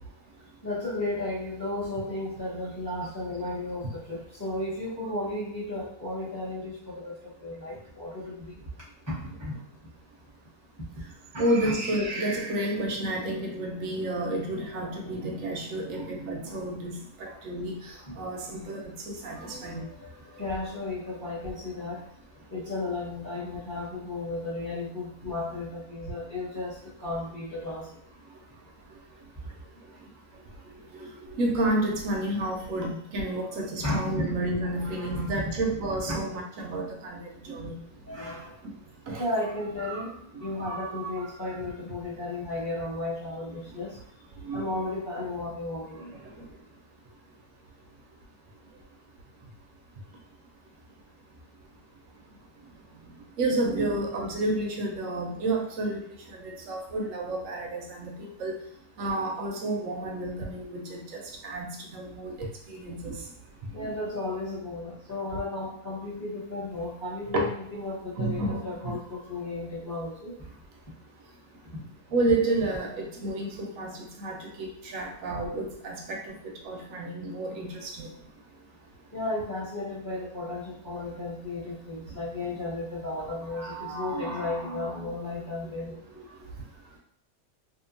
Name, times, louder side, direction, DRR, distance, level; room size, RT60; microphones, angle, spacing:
voice 1, 0.6-8.6 9.1-9.6 11.3-11.7 15.9-16.0 16.4-16.6 17.3-17.4 18.0-18.3 19.3-22.1 22.3-27.9 33.8-34.3 34.8-35.3 36.1-36.2 38.1-38.6 39.2-44.0 44.5-46.1 62.7-62.8 63.7-70.3 71.7-71.8 79.1-85.9, left 2 dB, 15° left, -9 dB, 0.8 m, -34 dB
voice 2, 11.4-19.8 30.7-37.2 37.4-37.8 39.1-39.2 44.4-44.7 53.4-56.0 56.3-58.5 59.0-63.2 63.8-63.9 67.3-67.5 68.2-68.9 72.1-76.3 76.6-78.1 86.1-86.2, right 1 dB, 70° right, 1 dB, 0.8 m, -30 dB
2.8 x 2.4 x 2.5 m, 0.68 s
omnidirectional pair, 1.7 m